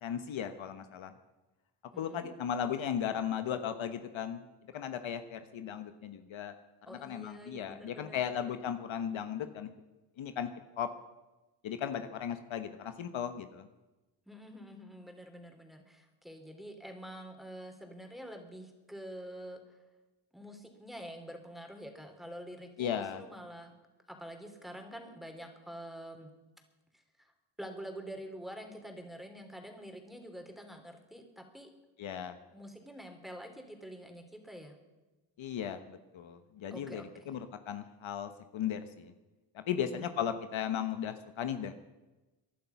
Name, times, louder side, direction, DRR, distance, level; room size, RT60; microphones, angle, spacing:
voice 1, 0.0-1.1 2.0-4.4 4.7-6.6 6.9-9.7 10.2-10.5 10.8-10.9 11.6-13.7 22.8-23.2 32.0-32.4 35.4-39.1 39.5-41.7, left 8 dB, 70° left, 9 dB, 1.2 m, -36 dB
voice 2, 1.9-2.3 6.9-8.3 14.3-19.8 20.3-23.7 24.1-26.3 27.2-27.3 27.6-31.7 32.5-34.8 36.7-37.4 39.8-40.1, equal, ahead, 4 dB, 3.4 m, -47 dB
20.5 x 11.0 x 5.9 m, 1.1 s
cardioid pair, 70°, 49 cm